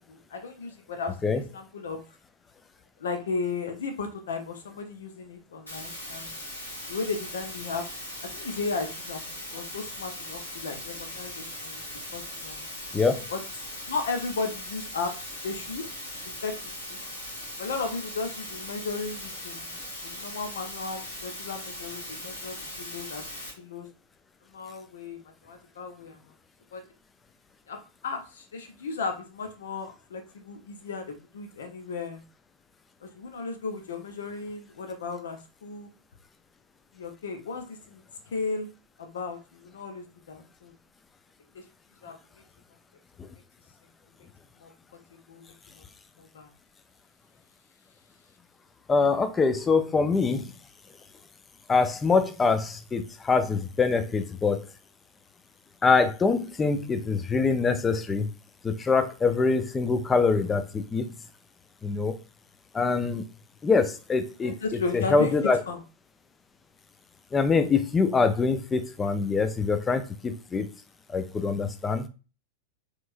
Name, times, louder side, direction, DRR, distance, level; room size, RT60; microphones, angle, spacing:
voice 1, 0.1-2.0 3.0-6.4 6.9-7.8 8.2-11.9 12.1-12.7 13.3-13.4 13.9-15.1 15.4-15.8 16.4-16.5 16.9-17.0 17.6-19.6 20.0-23.3 23.6-23.9 24.5-26.2 26.7-26.8 27.7-32.2 33.0-35.9 36.9-38.0 38.3-38.7 39.0-40.7 41.5-41.6 42.0-42.2 44.6-44.7 45.1-45.8 46.2-46.5 64.4-65.3 65.7-65.8, left 4 dB, 65° left, 0.8 m, -35 dB
sound 1, 5.7-23.5, left 1 dB, 80° left, 2.0 m, -39 dB
voice 2, 12.9-13.3 43.2-43.3 48.9-50.5 51.7-54.7 55.8-58.3 58.6-61.1 61.8-62.2 62.7-63.3 63.6-64.6 64.9-65.6 67.3-70.7 71.1-72.1, left 4 dB, 15° left, 0.5 m, -24 dB
4.5 x 3.2 x 2.6 m
figure-of-eight pair, 90°, 0 cm